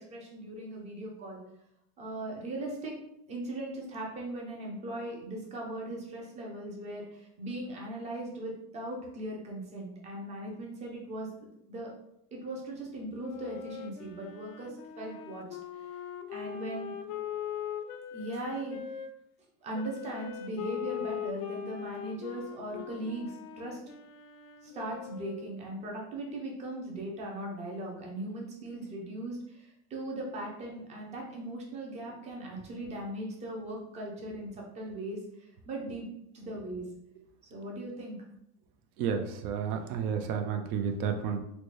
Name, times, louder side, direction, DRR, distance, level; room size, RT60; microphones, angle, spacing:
voice 1, 0.0-1.4 2.0-2.9 3.3-11.3 11.7-11.9 12.3-15.5 15.7-16.0 16.3-16.9 18.1-18.8 19.6-23.8 24.6-36.0 36.3-36.9 37.5-38.2, right 1 dB, 15° right, -1 dB, 0.4 m, -39 dB
Wind instrument woodwind instrument, 13.2-19.1 19.7-25.6, left 9 dB, 85° left, 0.5 m, -41 dB
voice 2, 39.0-41.4, right 7 dB, 80° right, 5 dB, 0.6 m, -31 dB
4.0 x 2.1 x 3.1 m, 0.79 s
supercardioid pair, 160°, 45 cm